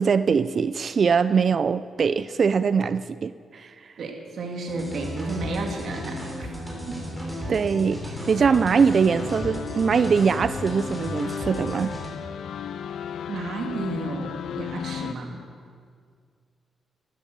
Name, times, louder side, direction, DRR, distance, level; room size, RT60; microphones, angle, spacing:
voice 1, 0.0-3.7 7.5-11.9, right 6 dB, 50° right, 14 dB, 0.4 m, -22 dB
voice 2, 4.0-6.2 6.9-7.0 13.3-15.4, right 2 dB, 65° right, 2 dB, 2.4 m, -32 dB
sound 1, 4.7-12.1, equal, ahead, 4.4 m, -34 dB
sound 2, 8.3-15.1, left 9 dB, 75° left, 0.4 m, -36 dB
14.0 x 12.5 x 6.8 m, 2.1 s
cardioid pair, 105°, 0 cm